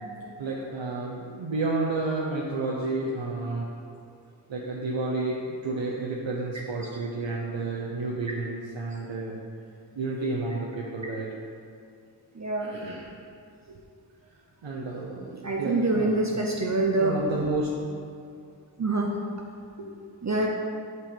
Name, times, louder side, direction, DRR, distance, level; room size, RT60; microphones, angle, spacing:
voice 1, 0.4-3.7 4.5-9.4 9.9-11.3 12.6-13.1 13.7-13.8 14.6-16.4 17.0-17.7 19.8-20.0, right 3 dB, 90° right, -4 dB, 0.8 m, -31 dB
voice 2, 12.3-12.7 15.4-17.2 18.8-19.2 20.2-20.5, right 2 dB, 40° right, -1 dB, 0.7 m, -25 dB
5.9 x 4.6 x 5.2 m, 2.4 s
cardioid pair, 40°, 44 cm